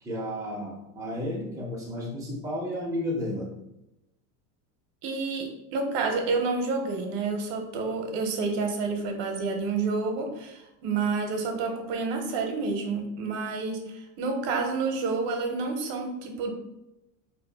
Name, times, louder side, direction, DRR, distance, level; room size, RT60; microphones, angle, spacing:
voice 1, 0.0-3.5, left 1 dB, 10° right, -4 dB, 0.7 m, -32 dB
voice 2, 5.0-16.5, right 4 dB, 50° right, 3 dB, 0.8 m, -29 dB
4.1 x 2.6 x 2.3 m, 0.89 s
supercardioid pair, 145°, 42 cm